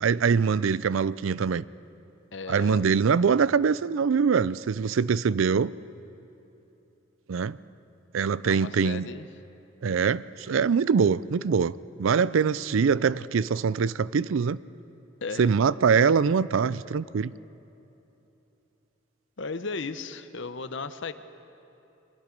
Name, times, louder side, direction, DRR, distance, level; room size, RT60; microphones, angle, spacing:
voice 1, 0.0-1.6 2.5-5.7 7.3-7.6 8.1-9.1 9.8-11.7 12.0-14.6 15.4-17.3, right 6 dB, 85° right, 19 dB, 0.4 m, -23 dB
voice 2, 2.3-2.9 8.4-9.3 15.2-15.5 19.4-21.1, left 4 dB, 70° left, 11 dB, 0.8 m, -35 dB
24.0 x 22.0 x 5.3 m, 3.0 s
head